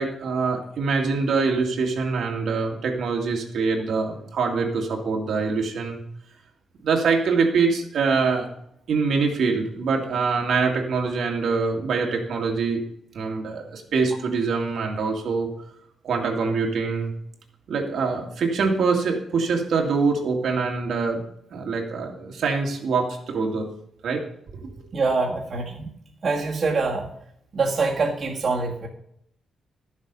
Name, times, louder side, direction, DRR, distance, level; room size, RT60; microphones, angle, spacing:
voice 1, 0.0-6.0 6.8-8.5 8.9-12.8 13.1-15.5 16.0-17.1 17.7-21.2 21.5-23.7 24.0-24.2 24.6-24.7, right 4 dB, 70° right, 1 dB, 2.2 m, -24 dB
voice 2, 24.9-25.9 26.2-27.1 27.5-28.9, right 3 dB, 40° right, -3 dB, 1.8 m, -24 dB
12.0 x 7.5 x 5.4 m, 0.72 s
cardioid pair, 125°, 0 cm